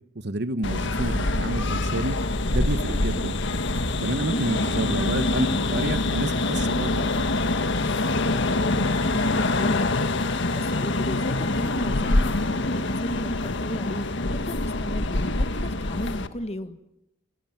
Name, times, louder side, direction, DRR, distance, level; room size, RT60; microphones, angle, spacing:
voice 1, 0.2-2.2 2.5-3.3 4.0-7.3, right 1 dB, 60° right, 1.3 m, -29 dB
sound 1, 0.6-16.3, left 2 dB, 65° left, 1.5 m, -25 dB
voice 2, 8.5-9.9 10.2-16.8, left 1 dB, 35° left, 1.6 m, -35 dB
30.0 x 28.0 x 6.0 m
head